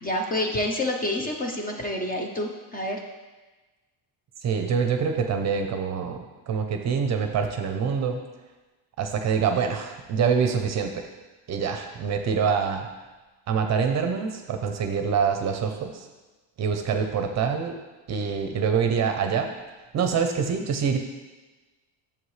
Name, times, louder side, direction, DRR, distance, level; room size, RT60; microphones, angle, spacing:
voice 1, 0.0-3.0, left 1 dB, 20° left, 2 dB, 0.7 m, -28 dB
voice 2, 4.4-8.2 9.0-11.1 11.5-12.9 13.5-16.1 16.6-17.7 18.1-19.5 19.9-21.0, right 6 dB, 40° right, 5 dB, 0.7 m, -25 dB
11.0 x 7.2 x 3.2 m, 1.2 s
cardioid pair, 165°, 44 cm